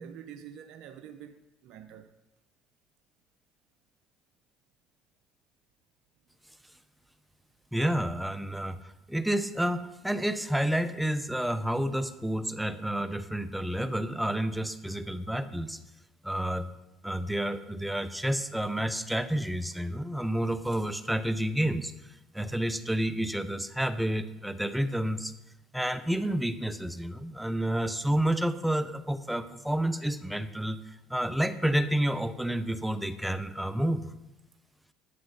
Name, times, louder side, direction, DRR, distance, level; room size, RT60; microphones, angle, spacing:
voice 1, 0.0-2.2, right 8 dB, 70° right, 0.7 m, -46 dB
voice 2, 7.7-15.8 16.2-16.7 17.0-21.9 22.3-25.3 25.7-34.0, right 1 dB, 5° right, 0.9 m, -30 dB
12.0 x 7.6 x 5.8 m
supercardioid pair, 75°, 0 cm